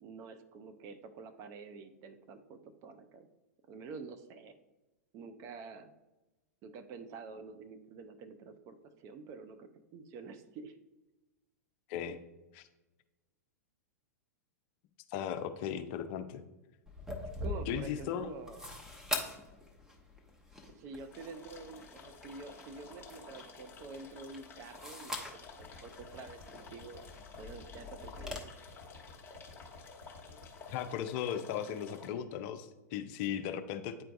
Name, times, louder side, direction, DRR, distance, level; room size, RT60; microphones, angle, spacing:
voice 1, 0.0-3.3 3.7-4.5 5.1-5.9 6.6-10.8 17.4-18.6 20.7-27.0 27.4-28.5, right 4 dB, 35° right, 10 dB, 0.5 m, -48 dB
voice 2, 15.1-16.4 17.7-18.3 30.7-34.0, left 9 dB, 40° left, 9 dB, 0.5 m, -37 dB
sound 1, 16.9-28.4, left 1 dB, 5° right, 0.8 m, -44 dB
sound 2, 21.1-32.1, left 5 dB, 25° left, 1.1 m, -52 dB
sound 3, 25.5-30.8, left 4 dB, 75° right, 2.1 m, -53 dB
8.7 x 4.5 x 2.5 m, 1.0 s
figure-of-eight pair, 100°, 9 cm